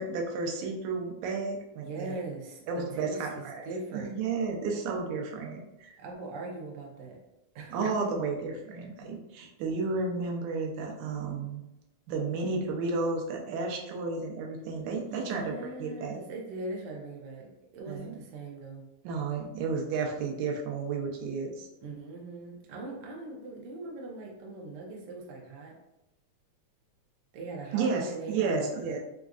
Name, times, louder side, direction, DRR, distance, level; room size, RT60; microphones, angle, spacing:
voice 1, 0.0-2.2 2.7-3.6 3.9-6.0 7.7-11.6 12.1-16.2 17.9-18.2 19.0-21.7 27.7-29.0, right 4 dB, 90° right, 1 dB, 2.1 m, -32 dB
voice 2, 1.7-4.1 6.0-7.2 7.5-8.1 15.0-18.9 21.8-25.7 27.3-29.0, right 2 dB, 70° right, -1 dB, 1.3 m, -41 dB
4.9 x 2.4 x 2.3 m, 0.89 s
omnidirectional pair, 3.4 m